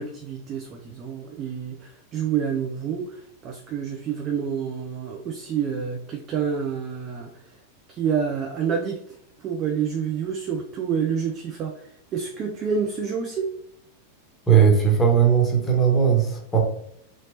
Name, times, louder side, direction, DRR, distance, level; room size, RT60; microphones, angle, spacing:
voice 1, 0.0-7.6 7.9-9.0 9.4-13.5, right 7 dB, 30° right, 1 dB, 0.5 m, -28 dB
voice 2, 14.5-16.6, right 7 dB, 15° left, 0 dB, 1.3 m, -18 dB
4.2 x 3.1 x 2.7 m, 0.70 s
figure-of-eight pair, 90°, 0 cm